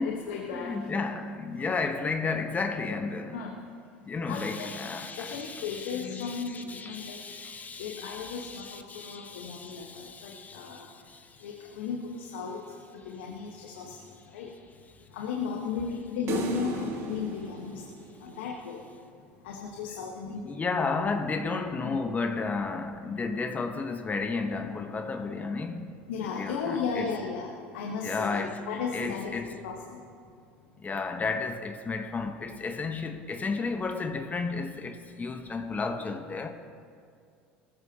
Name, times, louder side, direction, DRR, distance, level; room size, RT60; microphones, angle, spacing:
voice 1, 0.0-0.9 3.3-3.5 4.3-4.7 5.2-7.2 7.8-10.9 11.4-12.6 12.9-14.0 14.3-14.5 15.1-17.8 18.2-18.8 19.4-20.8 21.8-22.0 26.1-30.0, left 6 dB, 80° left, 1.3 m, -35 dB
voice 2, 0.5-3.4 4.0-11.5 20.4-26.0 26.4-27.1 28.0-28.6 28.9-29.6 30.8-36.5, left 4 dB, 25° left, 1.1 m, -33 dB
sound 1, 16.3-18.7, right 4 dB, 50° right, 2.1 m, -35 dB
19.5 x 14.0 x 2.9 m
hypercardioid pair, 80°, 6 cm